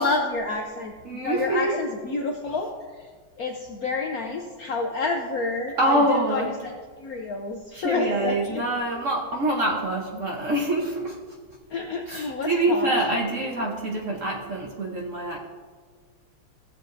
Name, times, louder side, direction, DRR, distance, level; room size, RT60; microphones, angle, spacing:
voice 1, 0.0-2.7 3.0-3.1 3.4-6.7 7.0-8.6 11.7-12.9, left 3 dB, 70° left, 1 dB, 0.8 m, -29 dB
voice 2, 1.0-1.8 5.8-6.5 7.7-11.2 12.1-15.4, right 1 dB, 55° right, -1 dB, 0.9 m, -25 dB
15.0 x 7.4 x 2.6 m, 1.5 s
omnidirectional pair, 2.4 m